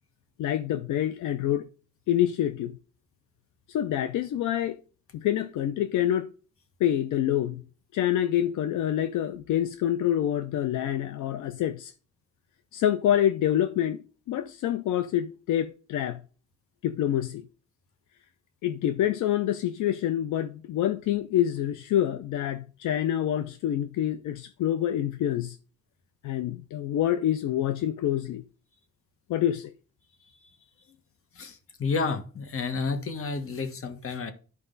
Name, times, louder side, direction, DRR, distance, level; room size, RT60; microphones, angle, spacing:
voice 1, 0.4-1.7 2.1-2.8 3.7-4.8 5.1-6.3 6.8-7.6 7.9-11.9 12.7-16.2 16.8-17.4 18.6-25.6 26.2-28.4 29.3-29.7, left 11 dB, 80° left, 0.6 m, -27 dB
voice 2, 31.3-34.3, left 4 dB, 45° left, 1.6 m, -31 dB
11.5 x 4.9 x 4.0 m
cardioid pair, 90°, 30 cm